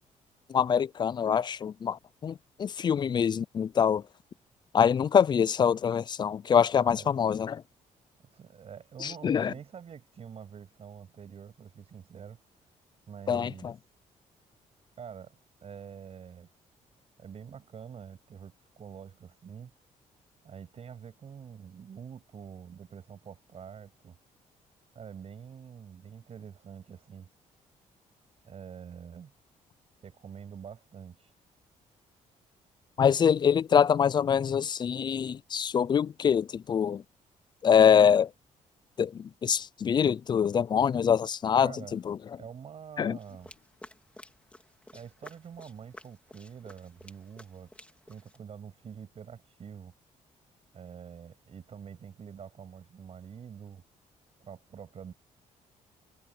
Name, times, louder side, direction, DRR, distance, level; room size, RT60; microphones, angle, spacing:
voice 1, 0.5-4.0 4.7-7.6 9.0-9.5 13.3-13.7 33.0-37.0 37.6-38.3 39.0-42.2 43.0-43.2, left 7 dB, 35° left, 0.3 m, -25 dB
voice 2, 8.3-12.4 13.1-13.7 15.0-16.5 17.2-19.7 20.4-24.2 24.9-27.3 28.4-29.3 30.0-31.3 41.6-42.0 42.4-43.5 44.9-47.7 48.1-49.9 50.7-53.8 54.4-55.1, right 7 dB, 50° right, 7.7 m, -46 dB
sound 1, 43.2-48.4, left 1 dB, 10° left, 3.4 m, -53 dB
cardioid pair, 120°, 13 cm